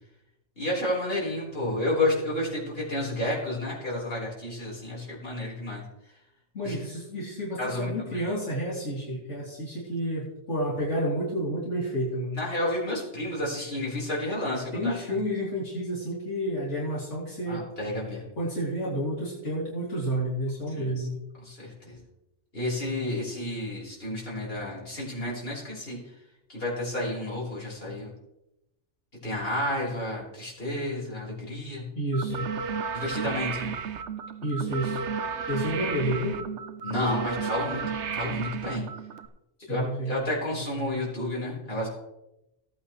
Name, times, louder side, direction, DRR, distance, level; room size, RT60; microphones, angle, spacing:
voice 1, 0.6-5.8 6.6-6.8 7.6-8.2 12.3-15.0 17.5-18.2 20.7-21.1 21.4-22.0 22.5-26.0 26.5-28.1 29.2-31.8 32.9-33.7 36.8-37.8 38.1-38.8 39.7-41.9, left 1 dB, 50° left, -5 dB, 4.5 m, -31 dB
voice 2, 6.5-12.4 14.7-17.6 18.4-21.2 32.0-32.5 34.4-35.0 35.5-36.4 39.7-40.2, equal, 75° left, -7 dB, 3.6 m, -30 dB
sound 1, 32.1-39.3, right 6 dB, 70° right, 1.1 m, -33 dB
17.5 x 8.9 x 3.2 m, 0.90 s
omnidirectional pair, 1.2 m